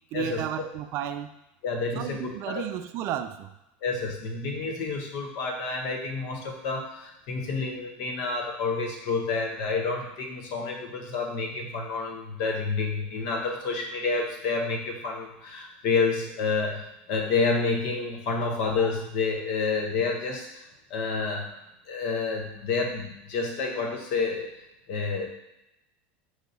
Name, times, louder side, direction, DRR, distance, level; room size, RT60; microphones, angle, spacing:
voice 1, 0.1-1.3 1.9-3.5, right 10 dB, 50° right, 9 dB, 0.3 m, -33 dB
voice 2, 1.6-2.6 3.8-20.6 20.9-21.5 21.9-24.5 24.9-25.3, left 4 dB, 60° left, 1 dB, 1.1 m, -29 dB
4.7 x 2.7 x 4.1 m, 0.89 s
supercardioid pair, 120°, 6 cm